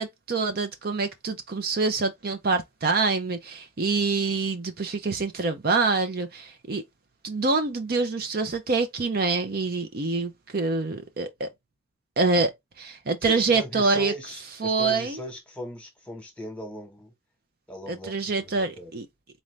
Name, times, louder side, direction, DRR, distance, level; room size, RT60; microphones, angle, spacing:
voice 1, 0.0-6.8 7.2-11.5 12.2-12.5 12.8-14.1 14.6-15.2 17.9-19.1, right 3 dB, 50° right, 0.6 m, -26 dB
voice 2, 13.2-17.1 17.7-18.1 18.4-18.9, equal, 5° left, 1.2 m, -39 dB
4.1 x 2.6 x 3.3 m
head